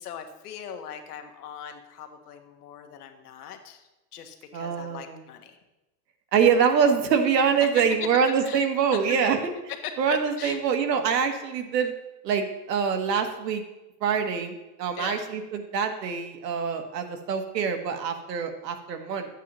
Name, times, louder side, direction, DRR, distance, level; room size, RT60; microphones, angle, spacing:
voice 1, 0.0-5.6 7.6-7.8 8.4-8.7 8.9-9.2 9.8-10.6 15.0-15.2, left 8 dB, 70° left, 6 dB, 1.2 m, -40 dB
voice 2, 4.5-5.2 6.3-9.5 10.0-11.9 12.2-13.6 14.0-19.3, right 6 dB, 85° right, 5 dB, 1.3 m, -25 dB
10.0 x 8.2 x 3.0 m, 1.0 s
supercardioid pair, 175°, 48 cm